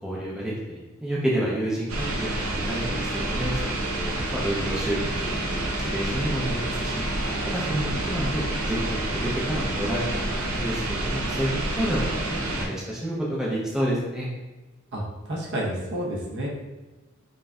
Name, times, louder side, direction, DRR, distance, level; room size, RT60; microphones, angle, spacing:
voice 1, 0.0-6.9 7.2-10.2 10.6-11.5 11.8-14.3, equal, 5° right, -6 dB, 0.5 m, -30 dB
sound 1, 1.9-12.7, right 1 dB, 85° right, 0.7 m, -28 dB
voice 2, 14.9-16.5, right 1 dB, 60° right, -3 dB, 0.9 m, -30 dB
5.3 x 2.6 x 2.3 m, 1.1 s
head